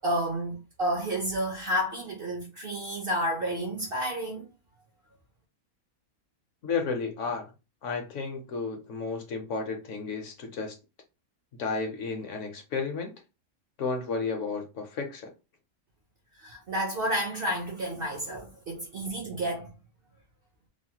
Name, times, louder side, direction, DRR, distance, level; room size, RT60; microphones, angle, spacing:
voice 1, 0.0-4.5 16.4-19.7, equal, 55° right, 0.6 m, -30 dB
voice 2, 6.6-7.5 7.8-10.8 11.6-13.1 13.8-15.3, left 4 dB, 65° left, 0.9 m, -32 dB
3.1 x 2.1 x 2.8 m
omnidirectional pair, 1.5 m